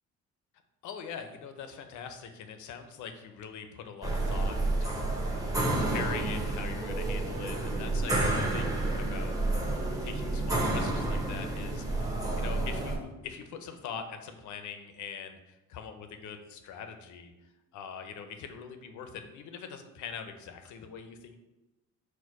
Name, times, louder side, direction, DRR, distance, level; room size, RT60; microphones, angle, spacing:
voice 1, 0.8-9.4 10.0-21.4, left 7 dB, 75° left, 7 dB, 0.6 m, -43 dB
sound 1, 4.0-13.0, right 2 dB, 10° right, 0.7 m, -30 dB
4.5 x 2.2 x 4.6 m, 1.0 s
cardioid pair, 90°, 30 cm